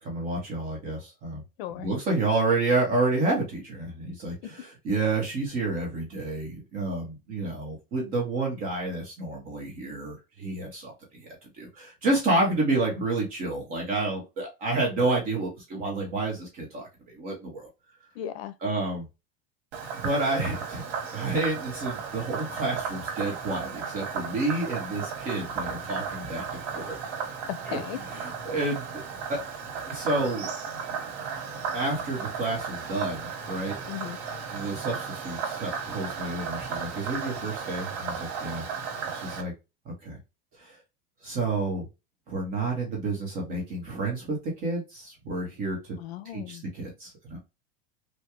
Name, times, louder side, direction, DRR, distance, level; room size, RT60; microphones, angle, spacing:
voice 1, 0.0-1.4 1.8-16.9 17.1-17.7 18.6-19.1 20.0-20.8 21.1-26.4 26.7-26.9 27.7-29.0 29.3-29.4 29.7-30.5 31.7-33.8 34.5-38.6 39.1-39.5 39.8-40.2 40.6-40.8 41.2-41.9 42.3-45.8 46.3-47.4, right 2 dB, 30° right, 1.0 m, -29 dB
voice 2, 1.6-1.9 12.4-12.8 18.2-18.5 27.5-28.0 33.9-34.2 46.0-46.6, left 11 dB, 80° left, 0.6 m, -36 dB
Frog, 19.7-39.4, right 6 dB, 85° right, 1.2 m, -35 dB
3.5 x 2.3 x 2.9 m
supercardioid pair, 180°, 31 cm